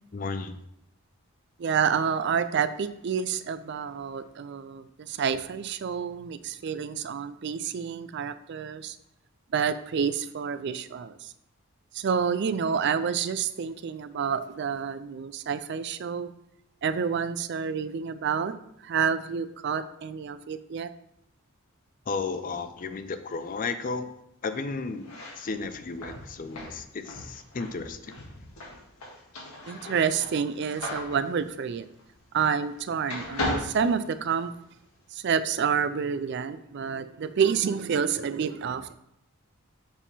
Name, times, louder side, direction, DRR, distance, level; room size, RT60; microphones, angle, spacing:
voice 1, 0.1-0.6 22.1-24.1 24.4-28.2, left 4 dB, 40° left, 10 dB, 0.4 m, -34 dB
voice 2, 1.6-9.0 9.5-11.3 11.9-16.3 16.8-18.5 18.8-20.9 29.7-31.9 32.3-34.5 35.1-39.0, right 6 dB, 50° right, 12 dB, 0.3 m, -28 dB
sound 1, 24.9-32.8 33.0-34.7, left 1 dB, 80° left, 1.7 m, -37 dB
7.2 x 3.6 x 4.1 m, 0.79 s
head